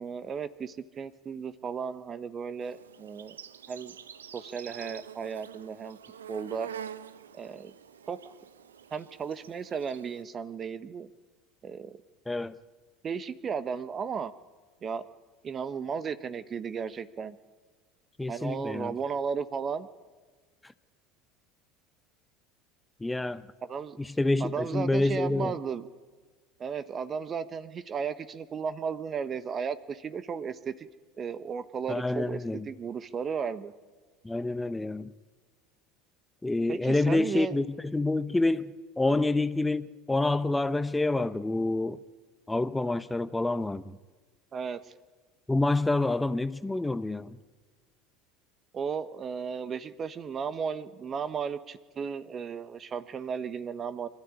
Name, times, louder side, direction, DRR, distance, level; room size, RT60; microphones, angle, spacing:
voice 1, 0.0-3.4 3.7-3.9 4.3-6.0 6.3-6.7 7.4-7.7 8.1-8.2 8.9-11.1 11.6-12.0 13.0-14.3 14.8-15.1 15.4-17.4 18.3-19.9 23.6-24.0 24.4-25.8 26.6-30.9 31.2-32.4 32.6-33.7 36.7-37.5 39.1-39.2 44.5-44.8 48.7-54.1, right 6 dB, 35° right, 1.2 m, -34 dB
Insect, 2.6-10.2, right 8 dB, 80° right, 0.8 m, -46 dB
voice 2, 18.2-18.9 20.6-20.7 23.0-23.4 24.0-25.6 31.9-32.7 34.2-35.1 36.4-42.0 42.5-44.0 45.5-47.4, left 2 dB, 10° left, 0.9 m, -28 dB
25.5 x 13.0 x 9.9 m
hypercardioid pair, 75°, 0 cm